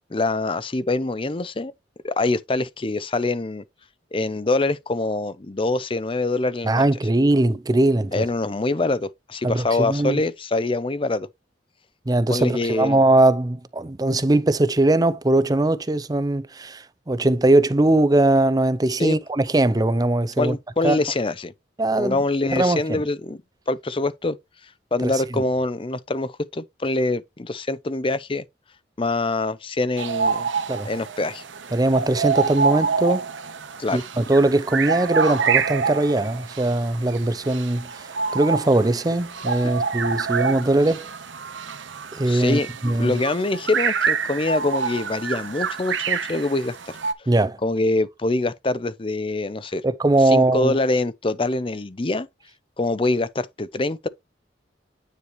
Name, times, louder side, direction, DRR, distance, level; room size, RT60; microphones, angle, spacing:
voice 1, 0.1-1.7 2.0-3.6 4.1-6.8 8.1-11.3 12.3-13.0 19.0-19.2 20.4-21.5 22.0-23.4 23.7-24.4 24.9-28.4 29.0-30.5 30.8-31.4 33.8-34.0 39.6-39.7 42.3-42.7 43.0-46.8 47.6-49.8 50.3-52.3 52.8-54.1, left 2 dB, 30° left, 0.6 m, -24 dB
voice 2, 6.6-8.2 9.4-10.2 12.1-20.6 20.8-21.0 21.8-22.2 22.5-23.0 25.0-25.4 30.7-30.9 31.7-33.3 33.9-41.1 42.1-43.2 47.3-47.6 49.8-50.7, right 2 dB, 20° right, 0.6 m, -20 dB
sound 1, 30.0-47.1, right 5 dB, 85° right, 1.0 m, -27 dB
9.5 x 4.7 x 3.1 m
head